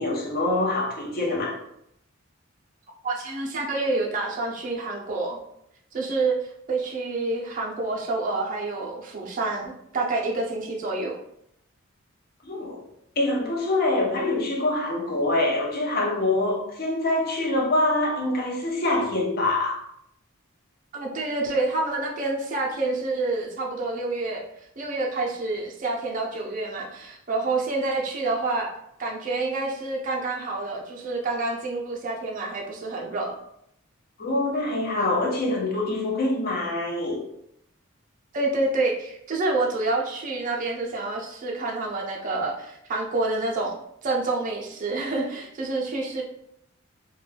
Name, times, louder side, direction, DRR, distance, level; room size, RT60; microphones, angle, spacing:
voice 1, 0.0-1.6 12.4-12.8 13.2-19.8 34.2-37.2, left 2 dB, 45° left, 0.5 m, -25 dB
voice 2, 3.0-5.4 5.9-6.4 6.7-11.1 20.9-24.4 24.8-28.7 29.0-33.3 38.3-43.8 44.0-46.2, right 2 dB, 40° right, 0.4 m, -28 dB
2.1 x 2.1 x 3.2 m
head